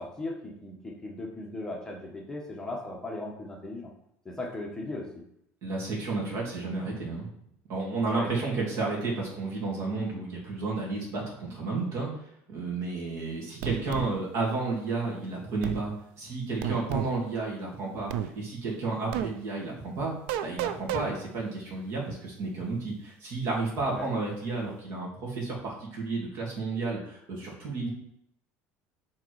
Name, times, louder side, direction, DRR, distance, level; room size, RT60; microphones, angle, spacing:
voice 1, 0.0-3.9 4.2-5.1 8.1-8.4 23.9-24.1, left 2 dB, 10° left, -1 dB, 1.1 m, -37 dB
voice 2, 5.6-7.3 7.7-12.1 12.5-20.1 20.4-27.9, right 3 dB, 60° right, -3 dB, 2.4 m, -32 dB
sound 1, 13.6-14.1 15.6-15.8 16.6-17.1 18.1-18.3 19.1-19.3 20.3-21.1, right 11 dB, 90° right, 0.4 m, -31 dB
4.9 x 4.2 x 4.7 m, 0.74 s
cardioid pair, 135°, 6 cm